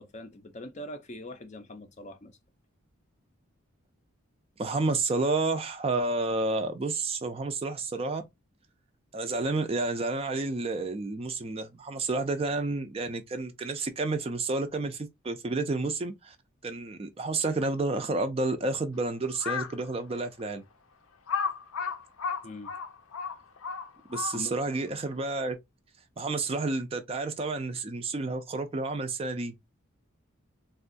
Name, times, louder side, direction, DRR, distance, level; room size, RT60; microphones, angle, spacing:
voice 1, 0.0-2.3 22.4-22.7 24.3-24.6, left 1 dB, 35° left, 0.4 m, -42 dB
voice 2, 4.6-8.2 9.1-16.4 16.6-20.6 24.1-25.6 26.2-29.5, right 3 dB, 30° right, 0.4 m, -30 dB
Crow, 19.3-19.8 20.4-20.5 21.3-24.7, left 6 dB, 85° left, 0.6 m, -33 dB
3.5 x 2.2 x 2.5 m
head